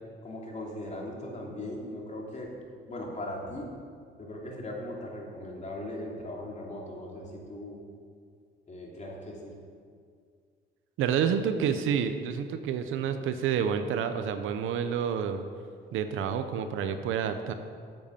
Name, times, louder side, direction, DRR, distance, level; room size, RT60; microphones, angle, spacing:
voice 1, 0.2-2.5 2.9-3.7 4.2-7.8 8.7-9.5, left 1 dB, 35° left, -2 dB, 2.9 m, -39 dB
voice 2, 11.0-15.4 15.9-17.5, right 7 dB, 90° right, 8 dB, 0.9 m, -29 dB
9.4 x 7.9 x 7.2 m, 2.1 s
cardioid pair, 90°, 20 cm